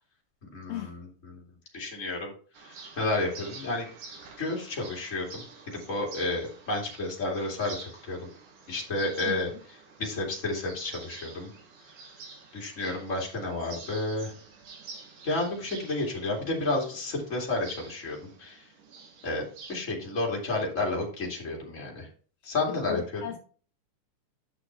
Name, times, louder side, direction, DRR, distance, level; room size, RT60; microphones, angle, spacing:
voice 1, 0.4-1.1 1.3-1.4 1.7-2.3 2.6-3.9 4.4-8.3 8.7-9.5 10.0-11.5 12.5-14.3 15.2-18.7 19.2-22.1 22.4-23.2, left 2 dB, 25° left, -1 dB, 2.7 m, -31 dB
sound 1, 2.5-19.7, right 4 dB, 80° right, 3.2 m, -48 dB
voice 2, 22.7-23.4, left 14 dB, 75° left, 5 dB, 1.5 m, -36 dB
9.1 x 6.2 x 3.3 m, 0.41 s
omnidirectional pair, 3.5 m